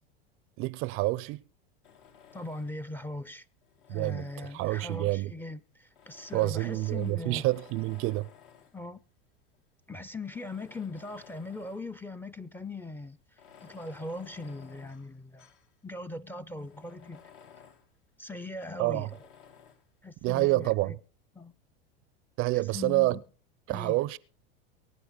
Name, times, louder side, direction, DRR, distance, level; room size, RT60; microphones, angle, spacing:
voice 1, 0.6-1.4 3.9-4.3 4.5-5.3 6.3-8.3 18.8-19.1 20.2-21.0 22.4-23.2 23.7-24.2, right 20 dB, 45° right, 0.5 m, -28 dB
Tools, 1.8-3.0 3.6-5.2 5.9-8.8 9.5-9.6 10.2-12.0 12.3-12.4 13.3-15.7 16.1-16.2 16.5-17.9 18.9-19.9, left 7 dB, 65° left, 2.4 m, -56 dB
voice 2, 2.3-3.4 3.9-7.4 8.7-9.0 9.9-13.2 13.6-15.5 15.8-17.2 18.2-19.1 20.0-21.0 21.3-21.5 22.5-23.2 23.7-24.0, left 2 dB, 5° left, 0.6 m, -40 dB
23.0 x 9.0 x 3.9 m
hypercardioid pair, 110°, 30 cm